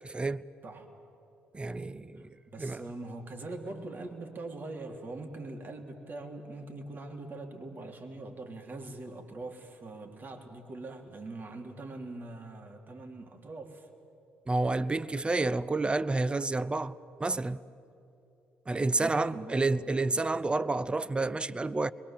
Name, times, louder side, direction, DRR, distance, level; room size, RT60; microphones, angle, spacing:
voice 1, 0.0-0.4 1.5-2.8 14.5-17.6 18.7-21.9, right 3 dB, 20° right, 0.8 m, -30 dB
voice 2, 2.2-13.9 19.0-19.7, right 2 dB, 45° right, 3.3 m, -42 dB
28.5 x 22.5 x 7.4 m
hypercardioid pair, 50°, 5 cm